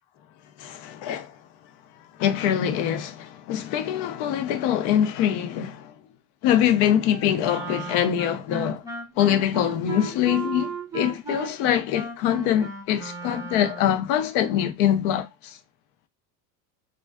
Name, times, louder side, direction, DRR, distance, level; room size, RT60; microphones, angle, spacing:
voice 1, 0.6-1.4 2.2-5.9 6.4-8.8 9.2-15.6, left 10 dB, 60° left, 0.7 m, -24 dB
Wind instrument woodwind instrument, 7.4-14.1, right 3 dB, 5° right, 0.6 m, -35 dB
2.3 x 2.3 x 2.3 m
hypercardioid pair, 90°, 48 cm